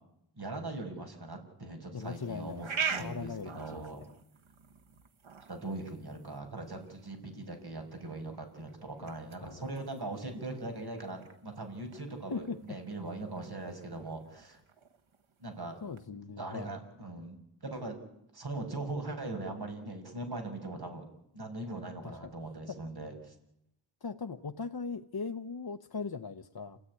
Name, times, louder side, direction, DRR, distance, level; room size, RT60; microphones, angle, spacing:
voice 1, 0.4-4.0 5.5-14.6 15.4-15.8 16.1-18.0 18.3-21.0 21.3-23.3, right 2 dB, 55° right, 5 dB, 6.1 m, -40 dB
voice 2, 1.9-3.8 9.0-9.1 9.4-9.6 12.3-12.8 15.8-16.8 22.0-22.3 22.7-22.8 24.0-26.8, left 5 dB, 50° left, 7 dB, 1.0 m, -39 dB
sound 1, 2.0-16.1, right 6 dB, 90° right, 1.7 m, -44 dB
28.5 x 17.5 x 9.9 m, 0.80 s
wide cardioid pair, 85°, 47 cm